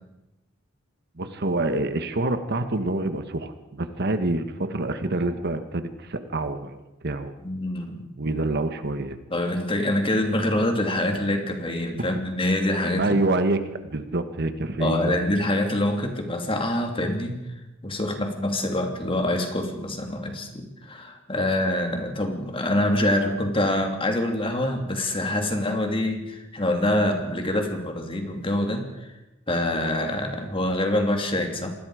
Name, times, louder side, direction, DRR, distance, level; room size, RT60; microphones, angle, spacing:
voice 1, 1.2-7.3 8.2-9.2 13.0-15.2, right 2 dB, 55° right, 9 dB, 1.4 m, -27 dB
voice 2, 7.4-8.0 9.3-13.2 14.8-17.4 17.8-28.8 29.5-31.7, left 1 dB, 25° left, 4 dB, 3.0 m, -25 dB
26.5 x 20.5 x 5.0 m, 0.95 s
head